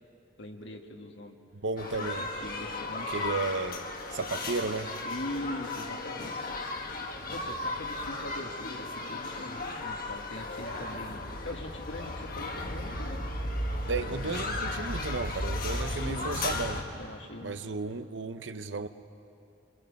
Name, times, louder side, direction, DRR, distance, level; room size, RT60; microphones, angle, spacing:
voice 1, 0.4-1.4 1.9-3.4 5.0-6.7 7.3-13.3 15.7-18.0, left 1 dB, 75° left, 3 dB, 1.9 m, -42 dB
voice 2, 1.6-2.3 3.1-4.9 13.9-16.8 17.4-18.9, right 3 dB, 85° right, 10 dB, 0.8 m, -34 dB
sound 1, 1.8-16.8, left 2 dB, 50° left, 1.6 m, -35 dB
28.5 x 24.0 x 5.3 m, 2.7 s
head